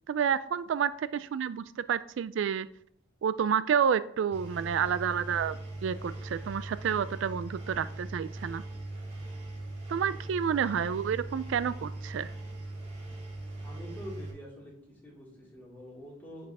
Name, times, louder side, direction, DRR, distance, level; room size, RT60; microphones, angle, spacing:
voice 1, 0.1-2.7 3.2-8.6 9.9-12.3, right 7 dB, 75° right, 15 dB, 0.3 m, -29 dB
Engine, 4.3-14.3, right 2 dB, 35° right, 2.3 m, -40 dB
voice 2, 13.6-16.5, equal, 10° left, -5 dB, 2.5 m, -46 dB
10.0 x 4.7 x 3.5 m, 0.66 s
head